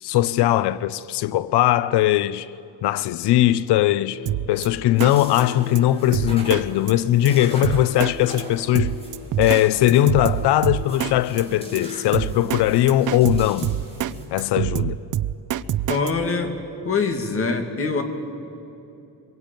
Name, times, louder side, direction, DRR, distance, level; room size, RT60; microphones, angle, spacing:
voice 1, 0.0-2.5 2.8-4.2 4.5-8.9 9.4-13.7 14.3-15.0, left 13 dB, 85° left, 0.7 m, -20 dB
sound 1, 3.8-12.2, left 7 dB, 65° left, 6.2 m, -42 dB
Drum kit, 4.3-4.7 5.0-5.1 5.4-5.5 5.8-5.9 6.1-6.6 6.9-7.0 7.3-7.4 7.6-8.1 8.4-8.5 8.8-9.6 9.9-11.1 11.4-11.5 11.8-11.9 12.1-12.6 12.9-14.1 14.4-16.1, right 12 dB, 50° right, 0.6 m, -25 dB
sound 2, 4.9-14.2, right 1 dB, 15° left, 5.1 m, -41 dB
voice 2, 15.9-16.5 16.8-18.0, left 4 dB, 35° left, 2.3 m, -23 dB
25.0 x 22.0 x 9.0 m
cardioid pair, 175°, 39 cm